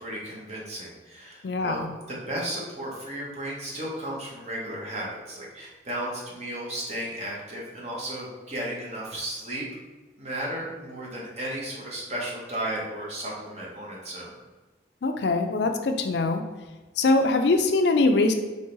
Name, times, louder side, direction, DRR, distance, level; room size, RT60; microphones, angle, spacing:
voice 1, 0.0-9.6 10.2-14.3, right 1 dB, 35° right, -4 dB, 1.1 m, -34 dB
voice 2, 1.4-1.9 15.0-16.4 17.0-18.3, left 3 dB, 65° left, 5 dB, 0.4 m, -22 dB
3.8 x 3.3 x 3.9 m, 1.2 s
head